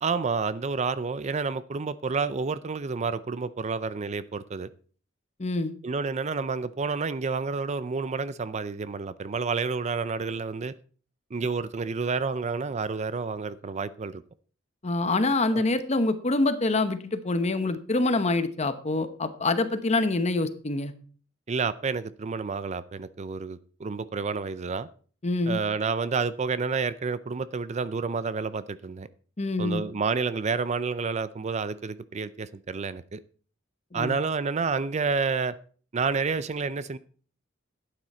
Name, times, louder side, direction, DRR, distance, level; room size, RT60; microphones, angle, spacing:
voice 1, 0.0-4.7 5.8-10.7 11.3-14.2 15.5-15.6 21.5-24.9 25.5-29.1 29.6-33.2 33.9-35.5 35.9-37.0, right 4 dB, 35° right, 15 dB, 0.5 m, -29 dB
voice 2, 5.4-5.7 14.8-20.9 25.2-25.6 29.4-29.8 33.9-34.2, left 2 dB, 35° left, 10 dB, 1.0 m, -26 dB
11.5 x 9.1 x 4.3 m, 0.42 s
head